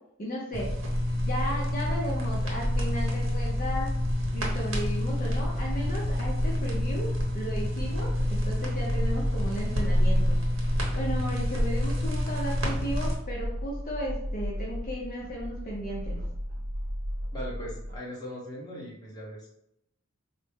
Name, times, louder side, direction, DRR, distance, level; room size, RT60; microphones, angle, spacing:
voice 1, 0.2-0.7 1.2-3.9 4.3-10.4 10.9-16.2, equal, 45° left, -4 dB, 0.7 m, -35 dB
sound 1, 0.5-13.2, left 1 dB, 70° right, 1.0 m, -28 dB
sound 2, 2.4-18.0, equal, 50° right, 0.5 m, -36 dB
voice 2, 17.3-19.5, equal, 20° left, -5 dB, 1.0 m, -39 dB
4.2 x 2.0 x 3.5 m, 0.76 s
head